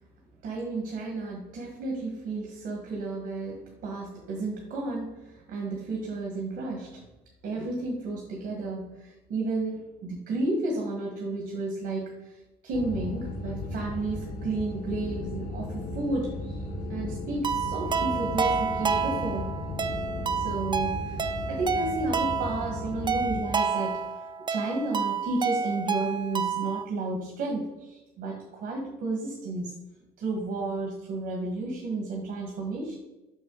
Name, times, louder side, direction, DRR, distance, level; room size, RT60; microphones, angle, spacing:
voice 1, 0.4-7.0 7.4-19.6 20.3-24.1 24.5-29.7 30.2-33.0, right 2 dB, 70° right, 0 dB, 1.5 m, -32 dB
sound 1, 12.7-23.4, left 1 dB, 60° left, 1.2 m, -36 dB
sound 2, 14.9-20.5, left 10 dB, 45° left, 0.4 m, -43 dB
sound 3, 17.4-26.8, right 5 dB, 25° right, 0.5 m, -29 dB
6.2 x 6.0 x 3.8 m, 1.0 s
cardioid pair, 110°, 17 cm